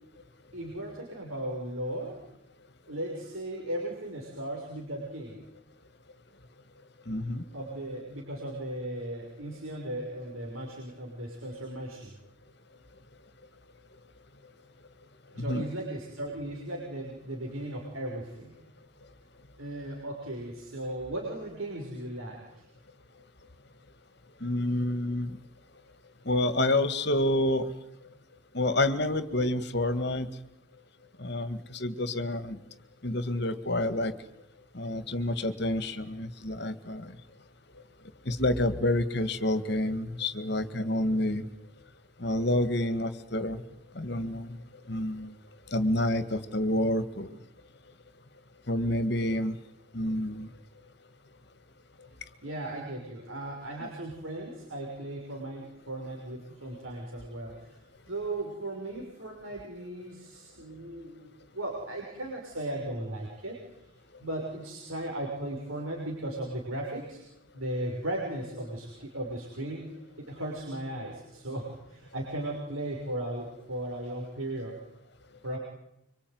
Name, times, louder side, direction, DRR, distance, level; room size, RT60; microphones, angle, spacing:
voice 1, 0.5-2.2 2.9-5.4 7.5-12.1 15.3-18.6 19.6-22.7 52.4-61.3 61.5-63.6 64.2-67.2 67.5-74.8 75.4-75.6, right 1 dB, 85° right, -1 dB, 6.0 m, -37 dB
voice 2, 7.1-7.4 15.5-15.6 24.4-25.4 26.3-27.7 28.5-30.3 31.2-32.6 33.0-34.1 34.7-37.1 38.3-41.5 42.2-43.6 44.0-44.6 44.9-45.3 45.7-47.3 48.7-49.6 49.9-50.5 53.8-53.9, left 1 dB, 55° left, 12 dB, 1.9 m, -28 dB
25.5 x 24.5 x 9.5 m, 0.84 s
head